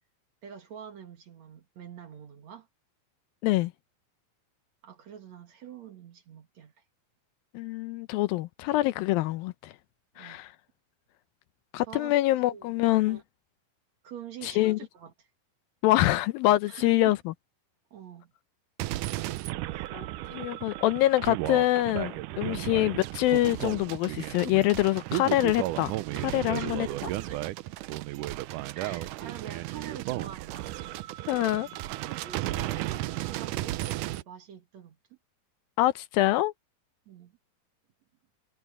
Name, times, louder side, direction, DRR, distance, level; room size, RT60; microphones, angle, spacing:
voice 1, 0.4-2.7 4.8-6.8 10.2-10.4 11.8-12.1 12.5-12.7 13.1-13.2 14.0-15.3 16.7-17.1 17.9-18.3 20.7-20.8 22.5-22.8 26.6-27.5 28.7-30.7 32.1-35.2 37.1-37.3, right 8 dB, 55° right, 2.6 m, -46 dB
voice 2, 7.5-9.7 10.2-10.5 11.7-13.2 14.4-14.8 15.8-17.2 19.9-20.1 20.3-25.9 26.2-26.9 31.3-31.7 35.8-36.5, left 16 dB, 80° left, 2.4 m, -25 dB
sound 1, 18.8-34.2, right 17 dB, 85° right, 1.8 m, -34 dB
omnidirectional pair, 4.3 m